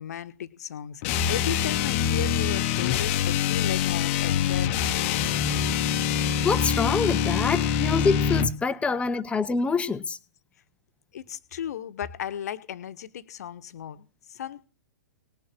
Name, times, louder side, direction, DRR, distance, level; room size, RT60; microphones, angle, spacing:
voice 1, 0.0-5.7 7.6-7.8 8.9-9.0 11.1-14.7, left 9 dB, 55° left, 1.4 m, -36 dB
sound 1, 1.0-8.6, left 8 dB, 40° left, 1.2 m, -25 dB
voice 2, 6.4-10.2, left 4 dB, 10° left, 1.1 m, -26 dB
19.0 x 7.0 x 7.8 m
figure-of-eight pair, 110°, 10 cm